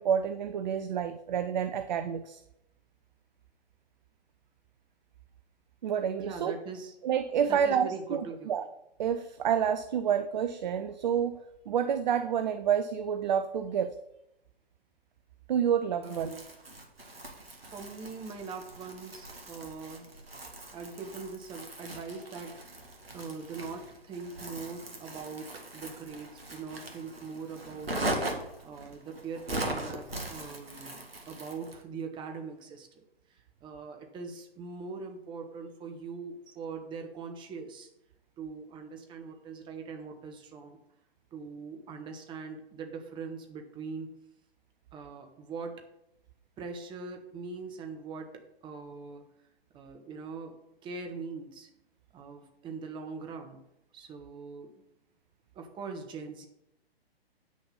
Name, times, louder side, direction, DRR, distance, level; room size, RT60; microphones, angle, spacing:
voice 1, 0.0-2.4 5.8-6.5 7.0-8.7 9.0-11.4 11.7-14.0 15.5-16.3, right 8 dB, 45° right, 10 dB, 0.6 m, -29 dB
voice 2, 6.2-6.9 7.5-8.6 16.0-16.4 17.6-20.1 20.5-22.6 23.1-27.9 28.6-33.0 33.3-37.9 38.4-40.8 41.3-44.1 44.9-45.8 46.6-49.2 49.7-51.7 52.1-53.6 53.9-54.7 55.5-56.5, right 5 dB, 15° right, 5 dB, 1.2 m, -42 dB
Crumpling crinkling, 16.0-31.8, right 1 dB, 70° right, 2.1 m, -40 dB
8.7 x 6.3 x 5.5 m, 0.82 s
figure-of-eight pair, 120°, 30 cm